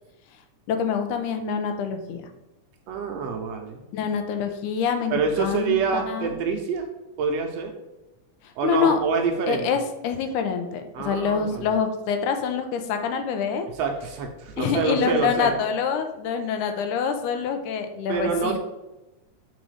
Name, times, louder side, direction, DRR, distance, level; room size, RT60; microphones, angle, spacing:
voice 1, 0.7-2.2 3.9-6.3 8.6-9.0 9.5-13.7 14.6-18.6, left 6 dB, 90° left, 6 dB, 2.1 m, -26 dB
voice 2, 2.9-3.9 5.1-6.9 7.2-7.8 8.6-9.6 10.9-11.8 13.7-15.5 18.1-18.6, right 5 dB, 75° right, 3 dB, 1.5 m, -26 dB
4.9 x 4.0 x 4.8 m, 1.0 s
omnidirectional pair, 3.5 m